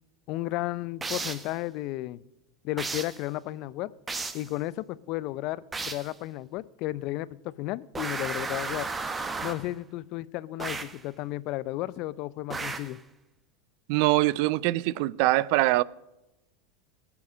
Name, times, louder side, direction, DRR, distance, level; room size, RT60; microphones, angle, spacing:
voice 1, 0.3-2.2 2.6-3.9 4.3-8.9 9.4-13.0, left 17 dB, 55° left, 0.6 m, -33 dB
sound 1, 1.0-1.5 2.8-3.2 4.1-4.5 5.7-6.1 7.9-9.7 10.6-11.0 12.5-13.0, right 4 dB, 20° right, 1.3 m, -34 dB
voice 2, 13.9-15.8, right 19 dB, 60° right, 0.4 m, -23 dB
18.0 x 7.1 x 6.5 m
hypercardioid pair, 95°, 0 cm